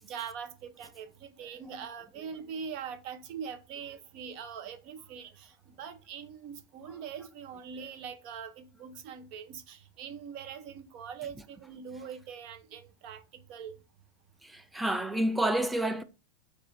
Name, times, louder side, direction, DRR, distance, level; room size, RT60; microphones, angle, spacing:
voice 1, 0.0-13.8, right 7 dB, 50° right, 0.6 m, -42 dB
voice 2, 14.4-16.0, right 1 dB, 5° right, 0.4 m, -29 dB
6.7 x 2.4 x 2.5 m
supercardioid pair, 135°, 0 cm